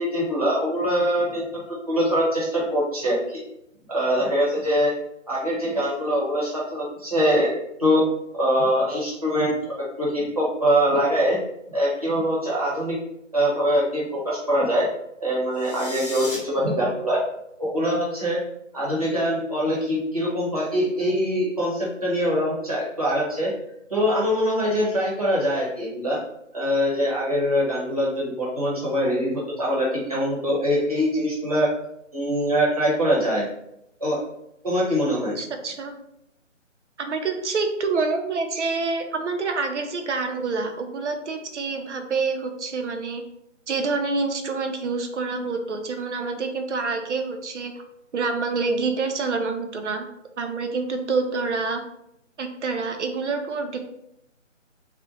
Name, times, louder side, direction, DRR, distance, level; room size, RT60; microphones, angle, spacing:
voice 1, 0.0-3.4 3.9-4.9 5.3-8.0 8.3-9.5 10.0-11.4 11.7-13.0 13.3-14.9 15.2-17.2 17.6-18.4 18.7-23.5 23.9-26.2 26.5-31.7 32.1-33.5 34.0-34.2 34.6-35.4, equal, 30° right, -6 dB, 0.7 m, -23 dB
sound 1, 15.5-16.4, left 1 dB, 45° left, 0.7 m, -35 dB
voice 2, 35.4-35.9 37.0-43.2 43.7-47.8 48.1-50.1 50.4-51.8 52.4-53.8, right 4 dB, 65° right, 5 dB, 0.5 m, -27 dB
2.4 x 2.1 x 2.7 m, 0.80 s
hypercardioid pair, 170°, 38 cm